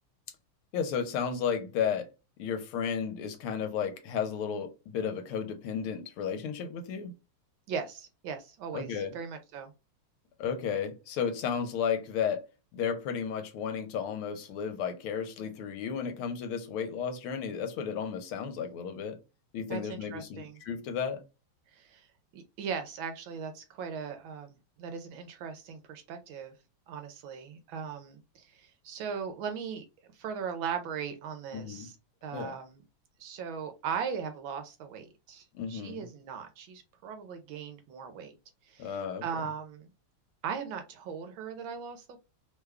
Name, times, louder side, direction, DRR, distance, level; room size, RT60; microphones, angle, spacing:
voice 1, 0.7-2.1 2.4-7.1 8.7-9.1 10.4-12.4 12.7-19.2 19.5-21.2 31.5-31.9 32.3-32.5 35.5-36.1 38.8-39.2, left 7 dB, 80° left, 1.5 m, -33 dB
voice 2, 7.7-9.7 19.7-20.6 21.7-22.1 22.3-26.5 26.9-29.9 30.1-31.9 32.2-32.8 33.2-38.3 38.6-39.9 40.4-42.2, right 6 dB, 75° right, 1.3 m, -38 dB
3.5 x 2.2 x 3.4 m
omnidirectional pair, 2.4 m